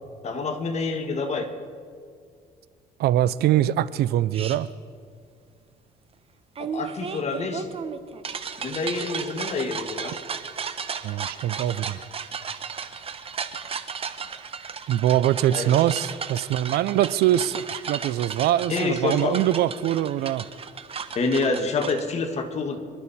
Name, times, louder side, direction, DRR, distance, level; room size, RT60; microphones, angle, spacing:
voice 1, 0.2-1.5 6.6-7.7 8.6-10.2 15.5-15.8 18.7-19.4 21.2-22.8, left 3 dB, 40° left, 5 dB, 1.8 m, -27 dB
voice 2, 3.0-4.7 11.0-12.0 14.9-20.5, right 12 dB, 70° right, 18 dB, 0.5 m, -23 dB
sound 1, 4.3-4.6 6.6-22.0, right 6 dB, 35° right, 0.9 m, -35 dB
25.5 x 12.0 x 4.2 m, 2.1 s
cardioid pair, 110°, 17 cm